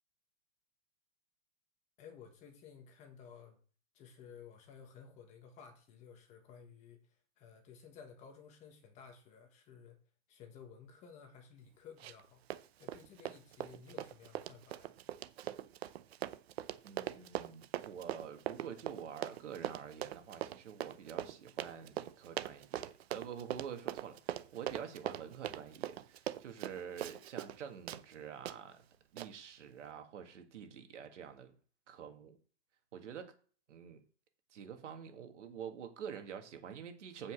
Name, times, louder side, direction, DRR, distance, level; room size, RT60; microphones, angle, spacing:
voice 1, 2.0-3.6 3.9-10.0 10.3-12.4 12.8-14.9, left 6 dB, 20° left, 1.3 m, -55 dB
Run, 12.0-12.3 12.5-27.6 27.9-28.0 28.5-28.6 29.2-29.3, right 12 dB, 60° right, 0.7 m, -41 dB
voice 2, 16.8-28.9 29.1-31.5 31.9-32.4 32.9-33.3 33.7-34.0 34.5-37.3, right 8 dB, 75° right, 2.1 m, -47 dB
7.6 x 5.4 x 7.6 m
supercardioid pair, 170°, 36 cm